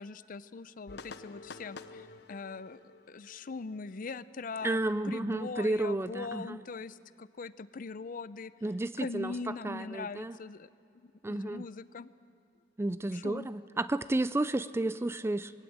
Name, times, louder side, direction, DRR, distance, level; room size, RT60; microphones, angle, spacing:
voice 1, 0.0-2.8 3.1-4.8 5.0-8.5 9.0-10.7 11.0-12.1 13.1-13.5, left 4 dB, 50° left, 16 dB, 0.5 m, -41 dB
sound 1, 0.9-4.6, left 4 dB, 65° left, 0.9 m, -49 dB
voice 2, 4.6-6.6 8.6-9.3 9.6-10.4 11.2-11.6 12.8-15.5, right 2 dB, 15° right, 15 dB, 0.4 m, -32 dB
21.0 x 16.5 x 8.6 m, 2.7 s
head